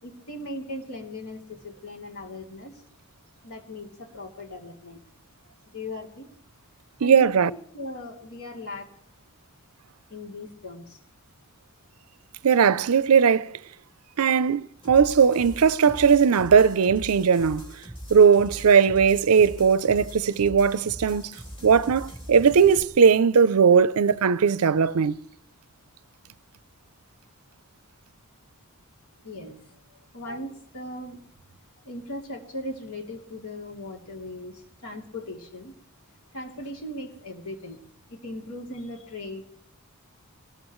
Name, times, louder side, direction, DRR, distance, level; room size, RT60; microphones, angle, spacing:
voice 1, 0.0-2.8 3.4-5.0 5.7-6.3 6.9-8.9 10.1-11.0 29.2-31.2 31.8-35.8 36.3-37.8 38.1-39.4, left 1 dB, 75° left, 3.0 m, -38 dB
voice 2, 7.0-7.5 12.4-13.6 14.2-17.7 18.1-21.3 21.6-25.2, right 6 dB, 75° right, 0.5 m, -19 dB
sound 1, 14.8-22.8, equal, 25° left, 3.6 m, -41 dB
24.0 x 19.0 x 3.1 m
head